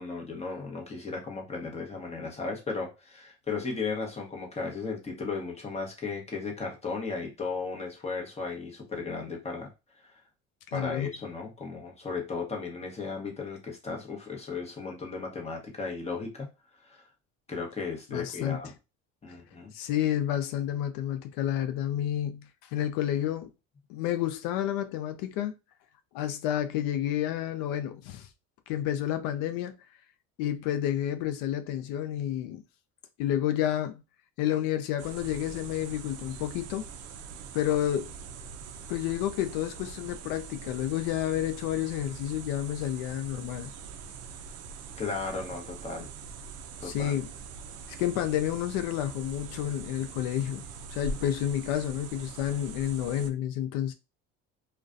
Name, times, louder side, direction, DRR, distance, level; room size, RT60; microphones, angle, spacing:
voice 1, 0.0-9.7 10.0-10.1 10.7-16.5 16.8-17.0 17.5-18.7 19.2-19.7 45.0-46.1 46.8-47.1, left 4 dB, 20° left, 0.9 m, -35 dB
voice 2, 10.7-11.1 18.1-18.6 19.3-19.4 19.7-23.5 23.9-25.5 26.1-28.3 28.7-29.8 30.4-32.6 33.2-34.0 34.4-36.9 37.5-38.1 38.9-43.7 46.8-47.3 48.0-50.6 50.9-53.9, left 11 dB, 75° left, 0.5 m, -30 dB
sound 1, 35.0-53.3, right 4 dB, 45° right, 0.4 m, -43 dB
2.3 x 2.2 x 2.4 m
supercardioid pair, 95°, 35 cm